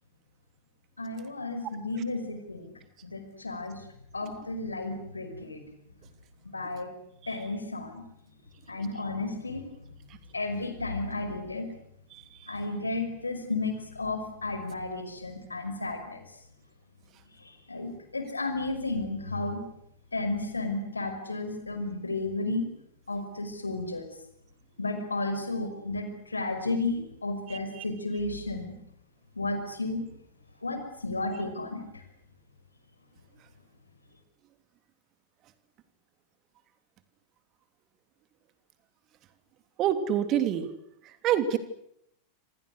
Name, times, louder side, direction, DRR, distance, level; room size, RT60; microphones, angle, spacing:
voice 1, 1.0-2.6 3.0-3.9 4.1-5.6 6.5-6.9 7.3-8.0 8.7-9.6 10.3-11.7 12.5-16.2 17.4-19.6 20.1-22.7 23.1-24.1 24.8-28.8 29.4-30.0 30.6-31.9, left 2 dB, 80° left, 8 dB, 5.7 m, -33 dB
voice 2, 39.8-40.7 41.2-41.6, right 10 dB, 35° right, 9 dB, 3.1 m, -25 dB
27.5 x 27.5 x 6.6 m, 0.75 s
figure-of-eight pair, 90°, 0 cm